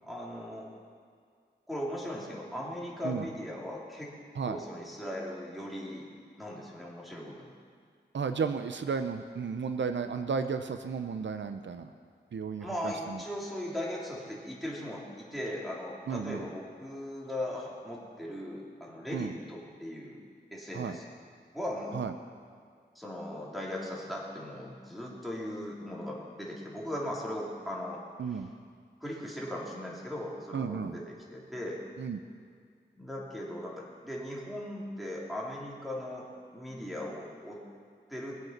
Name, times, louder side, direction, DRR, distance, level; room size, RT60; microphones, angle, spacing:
voice 1, 0.0-0.7 1.7-4.2 4.4-6.1 6.4-7.5 12.6-20.2 20.5-21.0 21.5-22.0 22.9-28.0 28.3-28.4 29.0-31.8 32.9-37.6 38.1-38.4, left 1 dB, ahead, -4 dB, 3.7 m, -38 dB
voice 2, 8.1-11.9 12.3-13.2 16.1-16.4 19.1-19.3 20.7-21.0 21.9-22.1 28.2-28.5 30.5-31.0 32.0-32.2, right 6 dB, 80° right, 8 dB, 0.7 m, -33 dB
21.5 x 8.0 x 6.0 m, 2.1 s
wide cardioid pair, 70°, 19 cm